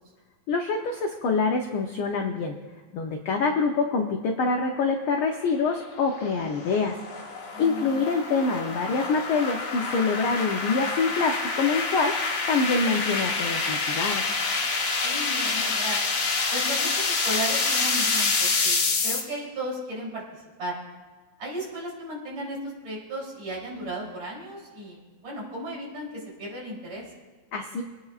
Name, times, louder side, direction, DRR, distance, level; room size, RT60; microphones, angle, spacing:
voice 1, 0.5-2.6 2.9-7.0 7.6-14.3 27.5-27.8, left 4 dB, 80° left, 3 dB, 1.1 m, -25 dB
sound 1, 5.3-19.2, left 4 dB, 55° left, 2.3 m, -27 dB
voice 2, 7.5-8.0 14.9-16.0 16.5-20.2 20.6-20.8 21.4-27.1, right 1 dB, 60° right, -4 dB, 4.5 m, -35 dB
27.0 x 9.3 x 2.4 m, 1.4 s
omnidirectional pair, 3.4 m